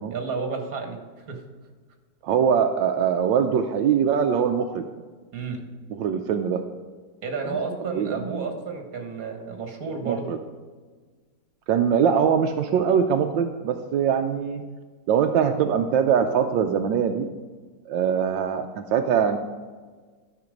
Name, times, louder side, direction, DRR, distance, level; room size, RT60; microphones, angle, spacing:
voice 1, 0.1-1.0 1.3-1.4 5.3-5.6 7.2-10.4, right 4 dB, 50° right, 3 dB, 1.9 m, -31 dB
voice 2, 2.2-4.9 5.9-6.6 7.9-8.4 10.0-10.4 11.7-14.6 15.1-17.2 17.9-19.4, right 7 dB, 85° right, 5 dB, 1.3 m, -22 dB
12.5 x 6.0 x 5.1 m, 1.4 s
omnidirectional pair, 2.0 m